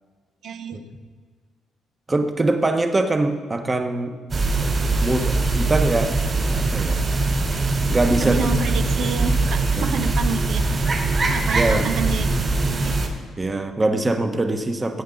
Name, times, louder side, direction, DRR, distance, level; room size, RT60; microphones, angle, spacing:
voice 1, 0.4-0.8 8.2-10.8 11.3-12.3 12.7-13.0, right 6 dB, 70° right, 7 dB, 1.1 m, -29 dB
voice 2, 2.1-4.2 5.0-6.2 6.5-7.0 7.9-8.5 9.8-9.9 11.5-11.9 13.4-15.0, right 2 dB, 25° right, 5 dB, 1.3 m, -23 dB
sound 1, 4.3-13.1, right 3 dB, 40° right, 3.2 m, -22 dB
20.0 x 8.8 x 4.0 m, 1.5 s
cardioid pair, 90°, 0 cm